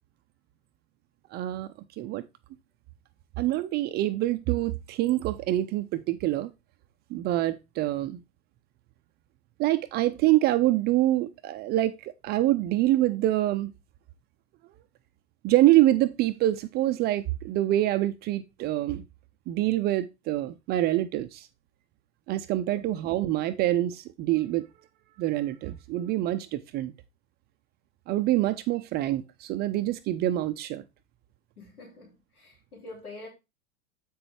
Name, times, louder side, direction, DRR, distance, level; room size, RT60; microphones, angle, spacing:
voice 1, 1.3-1.7 2.0-2.3 3.4-6.5 7.1-8.2 9.6-13.7 15.4-19.0 19.5-21.5 22.3-24.7 25.2-26.9 28.1-30.8, right 15 dB, 25° right, 0.4 m, -25 dB
voice 2, 31.6-33.3, left 2 dB, 85° left, 3.3 m, -46 dB
7.9 x 5.9 x 3.3 m
hypercardioid pair, 105°, 43 cm